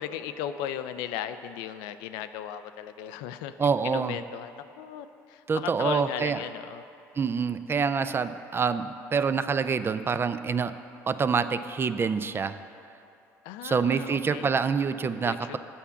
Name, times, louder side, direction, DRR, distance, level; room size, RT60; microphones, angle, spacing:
voice 1, 0.0-6.8 13.4-14.5 15.2-15.6, left 10 dB, 80° left, 11 dB, 0.4 m, -36 dB
voice 2, 3.6-4.2 5.5-6.4 7.2-10.7 11.1-12.6 13.6-15.6, right 5 dB, 30° right, 12 dB, 0.4 m, -26 dB
7.1 x 5.6 x 7.1 m, 2.7 s
supercardioid pair, 70°, 8 cm